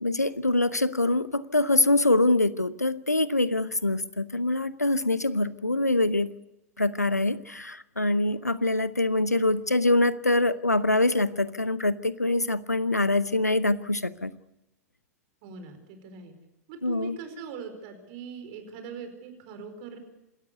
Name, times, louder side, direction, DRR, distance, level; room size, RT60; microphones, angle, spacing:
voice 1, 0.0-6.3 6.8-14.3 16.8-17.2, left 2 dB, 85° left, 17 dB, 0.8 m, -24 dB
voice 2, 15.4-16.3 16.7-20.0, right 5 dB, 45° right, 7 dB, 4.7 m, -41 dB
27.5 x 13.0 x 8.2 m, 0.94 s
figure-of-eight pair, 95°, 8 cm